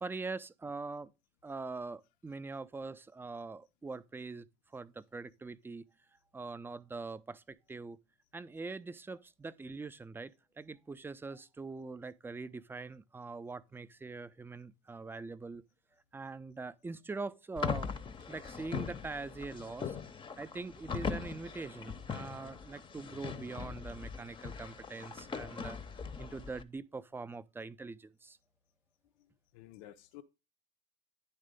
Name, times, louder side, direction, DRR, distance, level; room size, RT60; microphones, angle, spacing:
voice 1, 0.0-1.1 1.4-4.5 4.7-5.8 6.3-8.0 8.3-15.6 16.1-17.9 18.3-20.0 20.4-25.8 26.2-28.4, right 3 dB, 10° right, 0.4 m, -43 dB
sound 1, 17.6-26.6, left 6 dB, 25° left, 0.7 m, -40 dB
voice 2, 29.2-30.2, left 13 dB, 70° left, 0.5 m, -54 dB
9.6 x 3.3 x 5.1 m
hypercardioid pair, 70°, 18 cm